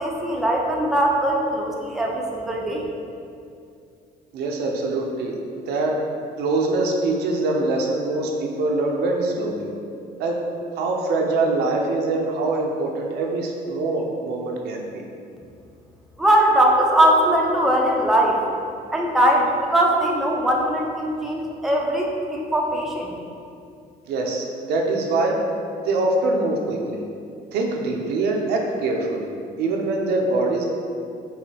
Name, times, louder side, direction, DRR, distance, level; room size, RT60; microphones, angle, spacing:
voice 1, 0.0-2.8 16.2-18.4 18.9-23.1, right 1 dB, ahead, -2 dB, 0.4 m, -20 dB
voice 2, 4.3-5.4 5.7-5.9 6.4-9.7 10.2-10.3 10.8-15.0 24.1-25.4 25.8-27.0 27.5-29.3 29.6-30.7, right 2 dB, 75° right, 1 dB, 0.5 m, -23 dB
4.8 x 2.6 x 2.8 m, 2.5 s
cardioid pair, 110°, 17 cm